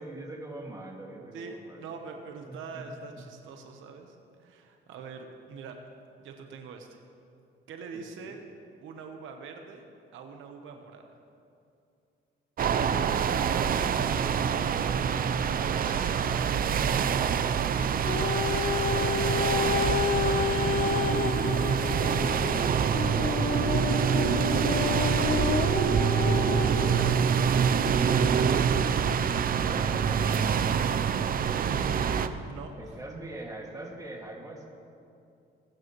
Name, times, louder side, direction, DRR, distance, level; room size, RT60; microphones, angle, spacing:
voice 1, 0.0-1.9 2.5-2.9 7.9-8.3 20.2-21.1 22.3-24.6 28.7-30.7 32.8-34.7, right 2 dB, 15° right, 0 dB, 2.1 m, -43 dB
voice 2, 1.3-5.8 6.2-7.0 7.7-8.4 8.8-9.9 10.1-11.2 15.2-16.6 17.0-17.8 31.5-33.0, right 5 dB, 85° right, 4 dB, 1.1 m, -43 dB
sound 1, 12.6-32.3, right 7 dB, 45° right, 0.5 m, -26 dB
sound 2, 18.1-27.2 27.8-27.9, left 7 dB, 45° left, 0.5 m, -30 dB
20.5 x 9.2 x 3.1 m, 2.5 s
cardioid pair, 90°, 20 cm